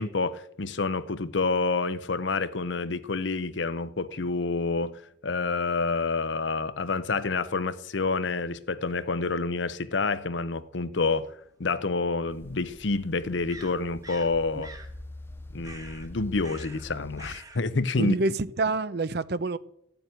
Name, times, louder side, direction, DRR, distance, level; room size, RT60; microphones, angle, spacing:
voice 1, 0.0-14.7 15.5-18.2, left 3 dB, 75° left, 0.8 m, -28 dB
sound 1, 11.4-11.5 13.5-14.3 14.6-14.9 15.6-16.1 16.4-16.9 17.2-17.6, right 2 dB, 20° right, 1.2 m, -46 dB
sound 2, 12.3-17.4, left 1 dB, 10° left, 0.6 m, -45 dB
voice 2, 17.9-19.6, right 3 dB, 60° right, 0.7 m, -27 dB
14.5 x 7.0 x 9.2 m
head